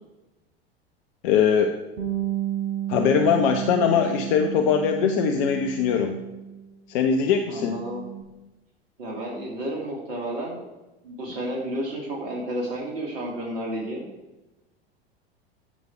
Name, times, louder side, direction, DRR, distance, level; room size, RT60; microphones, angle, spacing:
voice 1, 1.2-1.7 2.9-6.2 6.9-7.8, left 7 dB, 55° left, 5 dB, 0.9 m, -21 dB
Bass guitar, 2.0-6.7 7.0-8.2, right 12 dB, 80° right, 1.8 m, -32 dB
voice 2, 7.5-8.0 9.0-10.6 11.0-14.1, right 1 dB, 65° right, -2 dB, 2.3 m, -31 dB
14.0 x 5.2 x 4.6 m, 1.0 s
figure-of-eight pair, 85°, 31 cm